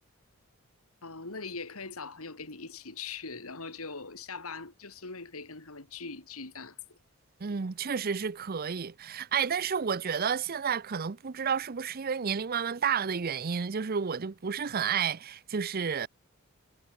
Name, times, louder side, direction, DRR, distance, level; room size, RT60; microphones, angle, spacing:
voice 1, 1.0-7.0, left 4 dB, 70° left, 2.9 m, -41 dB
voice 2, 7.4-16.1, right 6 dB, 45° right, 0.6 m, -31 dB
head